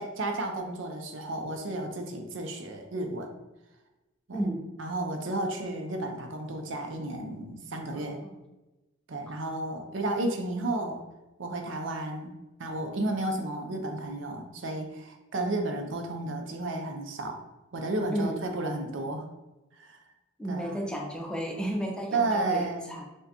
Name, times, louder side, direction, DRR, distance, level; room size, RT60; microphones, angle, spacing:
voice 1, 0.0-3.3 4.3-4.4 4.8-8.2 9.1-11.0 11.4-12.3 12.6-17.4 17.7-19.3 19.8-20.0 20.5-20.8 22.1-22.9, right 2 dB, 65° right, 4 dB, 0.6 m, -32 dB
voice 2, 4.3-4.7 7.7-8.4 18.1-18.4 20.4-23.1, right 1 dB, 5° left, 0 dB, 0.4 m, -33 dB
6.1 x 2.2 x 2.9 m, 1.1 s
head